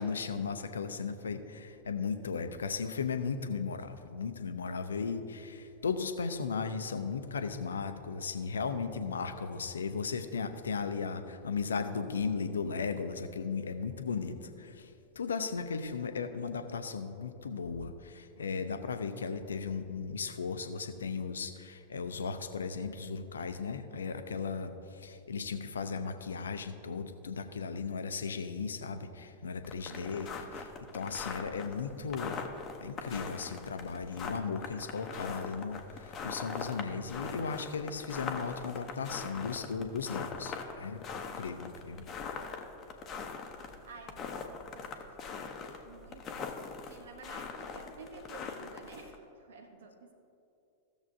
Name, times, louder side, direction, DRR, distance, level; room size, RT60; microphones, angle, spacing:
voice 1, 0.0-14.9 15.2-30.3 30.5-30.7 30.9-32.4 32.8-41.0 41.4-42.1, left 5 dB, 70° left, 9 dB, 0.6 m, -36 dB
sound 1, 29.6-49.1, left 5 dB, 30° left, 0.8 m, -42 dB
voice 2, 29.9-30.3 43.6-44.9 45.3-46.5 46.8-50.1, right 3 dB, 60° right, 4 dB, 1.0 m, -52 dB
15.5 x 7.1 x 2.7 m, 2.7 s
figure-of-eight pair, 90°, 0 cm